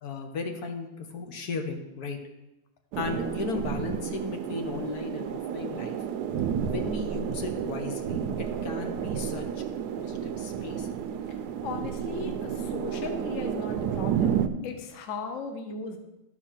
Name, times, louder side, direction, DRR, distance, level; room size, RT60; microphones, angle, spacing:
voice 1, 0.0-2.2 3.0-6.0 6.6-9.6 9.9-10.9, left 4 dB, 75° left, 4 dB, 1.5 m, -35 dB
sound 1, 2.9-14.5, right 8 dB, 85° right, 1.2 m, -31 dB
voice 2, 11.6-16.0, left 4 dB, 60° left, 6 dB, 1.1 m, -37 dB
12.0 x 4.6 x 5.8 m, 0.99 s
omnidirectional pair, 1.7 m